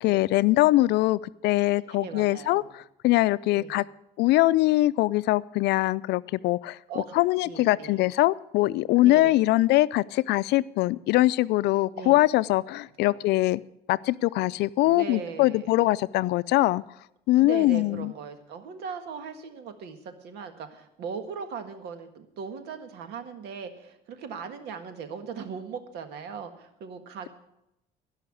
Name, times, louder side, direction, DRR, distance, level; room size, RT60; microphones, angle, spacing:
voice 1, 0.0-3.8 4.2-6.8 7.1-13.6 13.9-16.8 17.3-18.1, left 17 dB, 80° left, 18 dB, 0.4 m, -22 dB
voice 2, 1.9-2.7 3.6-3.8 6.9-8.0 9.0-9.4 11.9-12.2 13.0-13.2 14.8-15.7 17.4-27.3, right 6 dB, 80° right, 8 dB, 1.7 m, -39 dB
16.5 x 5.7 x 8.5 m, 0.83 s
cardioid pair, 110°, 17 cm